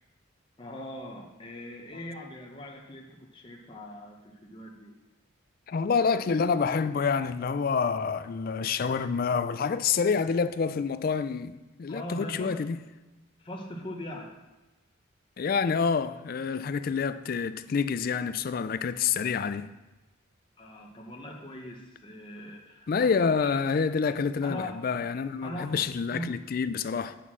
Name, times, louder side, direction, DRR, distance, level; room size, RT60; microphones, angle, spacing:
voice 1, 0.6-4.9 11.9-12.6 13.4-14.3 20.6-23.6 24.4-24.8 25.4-25.8 26.1-26.3, left 1 dB, 25° left, 0.9 m, -40 dB
voice 2, 5.7-11.5 11.8-12.8 15.4-19.7 22.9-27.2, left 5 dB, 45° left, 0.3 m, -27 dB
9.0 x 4.2 x 6.0 m
head